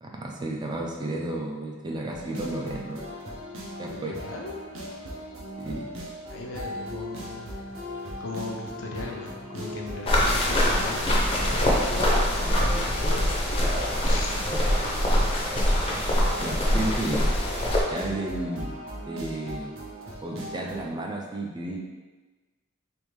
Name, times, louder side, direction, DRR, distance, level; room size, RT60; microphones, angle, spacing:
voice 1, 0.0-3.0 3.8-4.2 5.6-5.9 16.4-17.3 17.9-18.8 19.1-19.7 20.2-21.8, right 1 dB, 20° right, 0 dB, 0.4 m, -32 dB
sound 1, 2.1-20.9, equal, 70° right, 0.7 m, -38 dB
voice 2, 3.8-4.6 6.3-7.5 8.2-11.1 11.4-13.4 14.0-14.4, left 2 dB, 75° left, 0 dB, 0.6 m, -37 dB
sound 2, 10.1-17.8, left 1 dB, 30° left, 0.5 m, -24 dB
3.4 x 2.5 x 3.0 m, 1.3 s
head